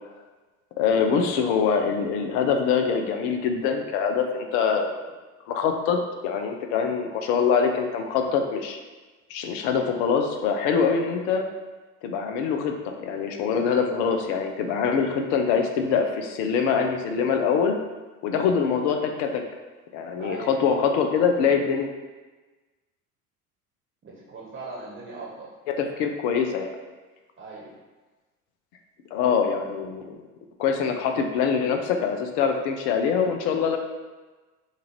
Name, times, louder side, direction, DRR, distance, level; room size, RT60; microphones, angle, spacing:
voice 1, 0.8-4.9 5.5-8.8 9.3-11.4 12.0-17.7 18.2-19.4 19.9-21.9 25.8-26.7 29.1-30.2 30.6-33.8, left 6 dB, 50° left, 5 dB, 0.7 m, -24 dB
voice 2, 20.2-20.6 24.0-25.5 27.4-27.7, right 3 dB, 25° right, -4 dB, 1.2 m, -38 dB
6.6 x 2.5 x 3.1 m, 1.2 s
figure-of-eight pair, 65°, 44 cm